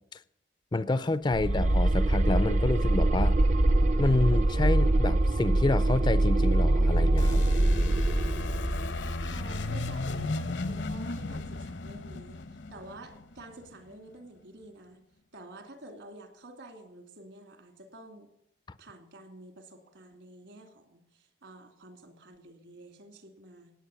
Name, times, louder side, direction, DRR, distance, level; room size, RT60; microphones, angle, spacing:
voice 1, 0.7-3.4 4.0-7.4, left 2 dB, 25° left, 0.4 m, -28 dB
sound 1, 1.3-10.2, right 1 dB, 40° right, 0.5 m, -24 dB
sound 2, 7.2-13.8, left 2 dB, 65° left, 0.8 m, -34 dB
voice 2, 9.2-15.0 15.3-18.3 18.8-23.7, right 1 dB, 70° right, 2.7 m, -49 dB
17.5 x 8.9 x 6.9 m
head